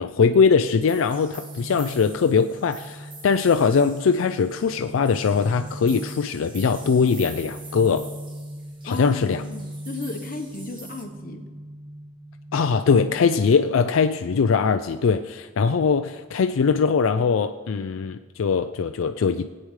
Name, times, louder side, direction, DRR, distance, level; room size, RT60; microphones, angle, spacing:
voice 1, 0.0-8.1 8.8-9.4 12.5-19.5, left 5 dB, 75° left, 8 dB, 0.4 m, -21 dB
sound 1, 0.6-11.0, right 2 dB, 25° right, 1.5 m, -45 dB
sound 2, 1.2-14.2, right 1 dB, 5° right, 1.3 m, -40 dB
voice 2, 8.9-11.5, left 3 dB, 45° left, 4 dB, 1.1 m, -35 dB
18.5 x 8.7 x 3.2 m, 1.4 s
head